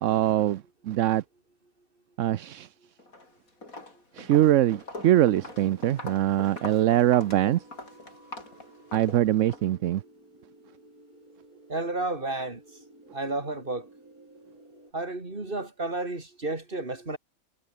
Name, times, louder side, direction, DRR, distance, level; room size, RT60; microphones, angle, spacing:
voice 1, 0.0-1.2 2.2-2.7 4.1-7.6 8.9-10.0, right 13 dB, 70° right, 0.9 m, -23 dB
Walk footsteps, 3.0-3.3 3.6-9.7, left 2 dB, 75° left, 6.0 m, -42 dB
sound 1, 5.3-14.9, right 2 dB, 90° right, 8.5 m, -54 dB
voice 2, 11.7-12.6 13.1-13.9 14.9-17.2, right 2 dB, 35° right, 3.8 m, -31 dB
omnidirectional pair, 1.5 m